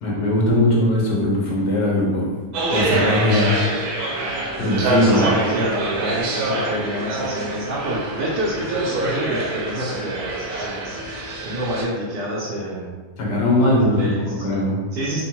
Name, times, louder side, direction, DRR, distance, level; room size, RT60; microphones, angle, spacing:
voice 1, 0.0-2.3 2.7-3.6 4.6-5.3 13.2-14.8, left 1 dB, 75° left, -4 dB, 1.4 m, -19 dB
sound 1, 2.5-11.8, right 2 dB, 70° right, 1.1 m, -25 dB
voice 2, 5.0-11.0 11.4-13.0 13.6-14.5 14.9-15.2, right 1 dB, 90° right, -6 dB, 1.3 m, -28 dB
3.5 x 2.1 x 2.8 m, 1.4 s
omnidirectional pair, 1.8 m